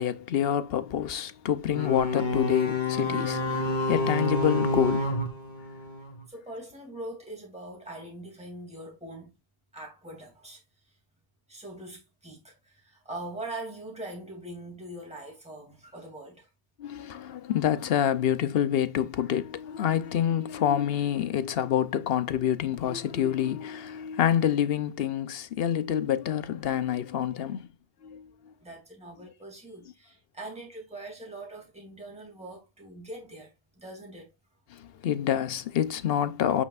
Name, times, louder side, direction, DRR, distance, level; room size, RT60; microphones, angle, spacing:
voice 1, 0.0-5.1 16.8-27.7 28.0-28.3 34.7-36.6, left 10 dB, 70° left, 0.9 m, -27 dB
sound 1, 1.7-6.2, left 2 dB, 50° left, 1.6 m, -28 dB
voice 2, 6.3-9.3 9.7-10.6 11.5-16.5 28.6-34.3, right 1 dB, 5° right, 2.6 m, -42 dB
8.5 x 5.4 x 2.5 m
omnidirectional pair, 1.1 m